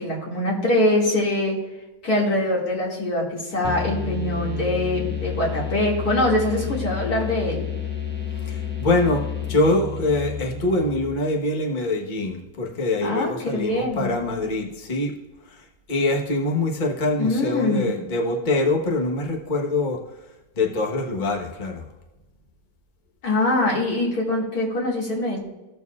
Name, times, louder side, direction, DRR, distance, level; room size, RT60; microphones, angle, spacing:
voice 1, 0.0-1.6 2.0-7.7 13.0-14.1 17.2-17.9 23.2-25.4, left 1 dB, 85° left, -4 dB, 2.7 m, -23 dB
sound 1, 3.6-11.3, left 8 dB, 10° left, 1.0 m, -30 dB
voice 2, 8.4-15.1 15.4-20.0 20.5-21.8, left 2 dB, 35° left, 0 dB, 1.3 m, -24 dB
16.5 x 6.8 x 2.4 m, 1.1 s
omnidirectional pair, 1.6 m